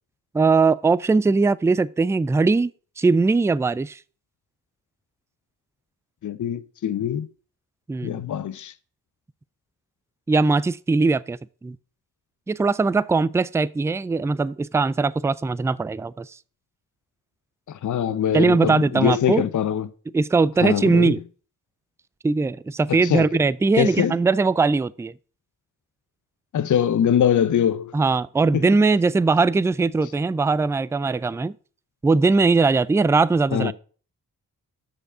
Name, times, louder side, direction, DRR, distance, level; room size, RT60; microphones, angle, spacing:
voice 1, 0.3-2.7 3.0-4.0 7.9-8.2 10.3-11.8 12.5-16.3 18.3-19.4 20.1-21.2 22.2-25.1 27.9-31.5 32.0-33.7, right 4 dB, 10° right, 0.3 m, -20 dB
voice 2, 6.2-7.3 8.0-8.7 17.7-19.9 20.6-21.1 23.0-23.3 23.8-24.1 26.5-27.9 28.5-28.7 33.5-33.7, left 9 dB, 50° left, 0.7 m, -23 dB
6.4 x 5.1 x 6.6 m
supercardioid pair, 45°, 39 cm